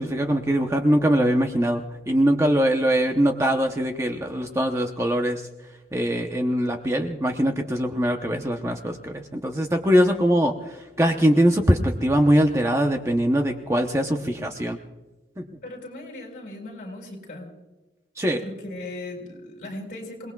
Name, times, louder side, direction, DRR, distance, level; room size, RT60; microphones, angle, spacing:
voice 1, 0.0-5.4 5.9-14.8 15.4-15.5 18.2-18.4, equal, 15° right, 4 dB, 0.8 m, -22 dB
voice 2, 15.6-17.5 18.4-20.3, left 2 dB, 45° left, 0 dB, 5.1 m, -37 dB
28.5 x 19.5 x 2.3 m, 1.1 s
head